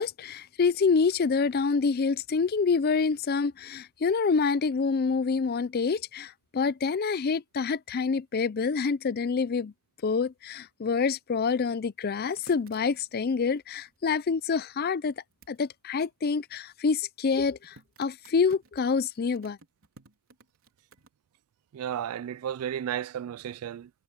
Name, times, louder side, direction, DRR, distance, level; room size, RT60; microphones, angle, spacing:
voice 1, 0.0-9.7 10.0-15.1 15.5-19.6, left 5 dB, 45° left, 0.4 m, -27 dB
sound 1, 12.1-14.4 15.3-15.6 17.2-21.1, right 3 dB, 70° right, 3.9 m, -56 dB
voice 2, 21.7-23.9, right 9 dB, 85° right, 0.3 m, -33 dB
head